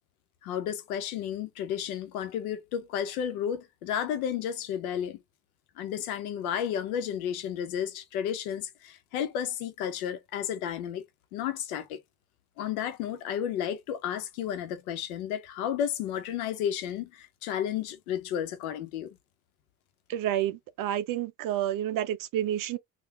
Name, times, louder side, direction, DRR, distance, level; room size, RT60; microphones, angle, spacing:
voice 1, 0.4-5.2 5.8-11.0 11.3-12.0 12.6-19.2, left 9 dB, 85° left, 1.0 m, -32 dB
voice 2, 20.1-22.8, right 11 dB, 50° right, 0.5 m, -29 dB
3.6 x 2.5 x 3.4 m
hypercardioid pair, 75°, 42 cm